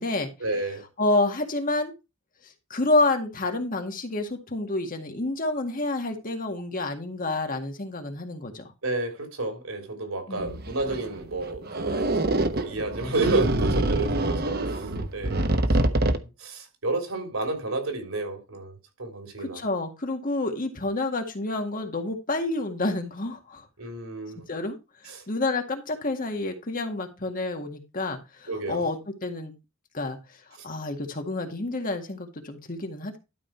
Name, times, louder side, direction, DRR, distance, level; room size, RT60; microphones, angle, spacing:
voice 1, 0.4-0.8 8.8-12.2 12.5-16.0 16.4-18.7 19.0-19.6 23.8-24.4 25.1-25.2 28.5-28.8, right 2 dB, 90° right, 3.5 m, -31 dB
voice 2, 1.0-1.9 2.7-8.7 10.3-10.6 19.4-23.7 24.5-24.8 25.3-29.5 29.9-30.2 30.6-33.2, left 2 dB, 40° left, 2.0 m, -28 dB
sound 1, 10.4-16.2, right 2 dB, 50° right, 1.1 m, -25 dB
12.0 x 5.0 x 4.5 m
head